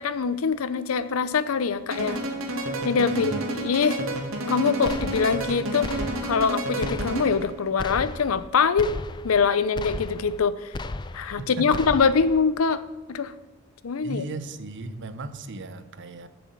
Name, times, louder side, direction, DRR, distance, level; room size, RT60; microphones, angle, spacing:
voice 1, 0.0-2.2 2.8-3.3 3.6-4.0 4.5-5.9 6.2-9.0 9.2-10.7 11.1-12.8 13.1-13.3 13.8-14.2, left 5 dB, 80° left, 15 dB, 0.6 m, -23 dB
sound 1, 1.9-7.5, right 1 dB, 75° right, 1.8 m, -30 dB
voice 2, 3.1-3.4 11.4-11.9 14.0-16.3, right 2 dB, 60° right, 12 dB, 0.8 m, -36 dB
sound 2, 4.9-5.5 5.8-6.5 6.8-7.5 7.8-8.5 8.8-9.5 9.8-10.5 10.7-11.4 11.7-12.4, left 2 dB, 20° left, 0.3 m, -35 dB
7.7 x 6.8 x 7.8 m, 1.2 s
head